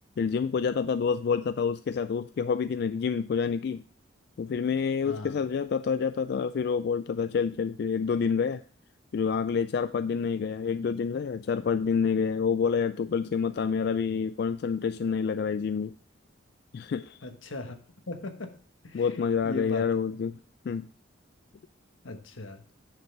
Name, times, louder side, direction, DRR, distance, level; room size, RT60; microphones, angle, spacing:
voice 1, 0.2-3.8 4.4-8.6 9.1-15.9 16.7-17.2 18.9-20.4 20.7-20.9, left 6 dB, 55° left, 0.3 m, -28 dB
voice 2, 5.0-5.4 17.2-17.8 18.1-18.6 18.8-19.1 19.4-19.9 22.0-22.6, left 2 dB, 85° left, 1.2 m, -38 dB
9.7 x 6.6 x 3.3 m
head